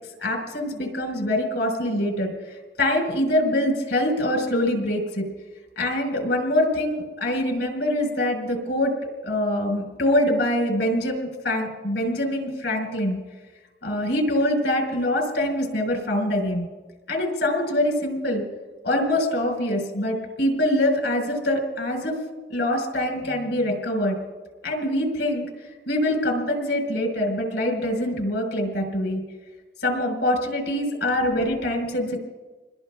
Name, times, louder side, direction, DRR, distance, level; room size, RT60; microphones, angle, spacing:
voice 1, 0.2-5.3 5.8-8.9 9.2-13.2 13.8-16.7 17.1-18.4 18.8-22.2 22.5-24.2 24.6-25.5 25.9-29.2 29.8-32.2, left 1 dB, 85° left, 1 dB, 4.6 m, -24 dB
28.5 x 21.0 x 2.4 m, 1.3 s
head